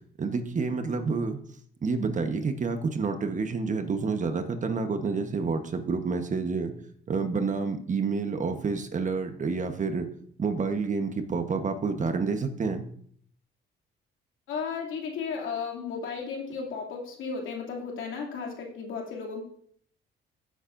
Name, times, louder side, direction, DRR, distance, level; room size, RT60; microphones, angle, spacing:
voice 1, 0.2-1.4 1.8-6.7 7.1-10.1 10.4-12.8, right 4 dB, 40° right, 7 dB, 1.1 m, -29 dB
voice 2, 14.5-19.4, left 5 dB, 80° left, -1 dB, 2.7 m, -34 dB
15.0 x 8.4 x 2.6 m, 0.62 s
cardioid pair, 90°, 20 cm